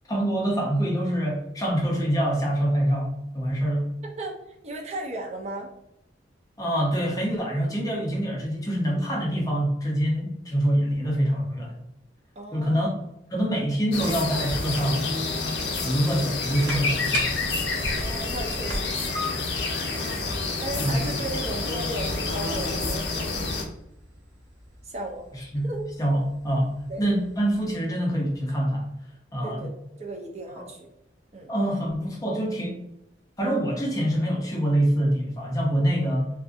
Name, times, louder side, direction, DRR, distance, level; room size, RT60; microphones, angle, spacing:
voice 1, 0.1-3.9 6.6-11.7 12.5-12.9 13.3-15.0 15.8-17.4 20.8-21.0 25.3-25.7 26.0-28.9 29.3-29.7 30.6-30.7 31.5-32.8 33.4-36.3, equal, 20° left, -2 dB, 0.6 m, -25 dB
voice 2, 4.6-5.7 12.4-12.9 17.9-19.1 20.6-23.4 24.8-25.2 25.6-25.8 26.9-27.1 29.4-29.7 30.0-30.9 31.3-31.5, right 2 dB, 35° right, 1 dB, 0.5 m, -35 dB
sound 1, 13.9-23.6, left 3 dB, 65° left, 0.5 m, -28 dB
sound 2, 16.4-27.7, equal, 80° right, 0.7 m, -40 dB
2.5 x 2.4 x 2.4 m, 0.82 s
head